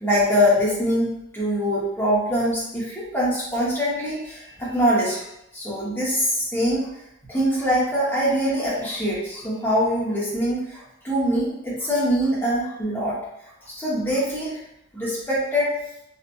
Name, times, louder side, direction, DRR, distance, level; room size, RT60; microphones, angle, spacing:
voice 1, 0.0-5.2 5.5-6.9 7.3-13.2 13.6-14.6 14.9-15.7, equal, 10° left, -9 dB, 0.8 m, -23 dB
2.6 x 2.3 x 2.2 m, 0.81 s
head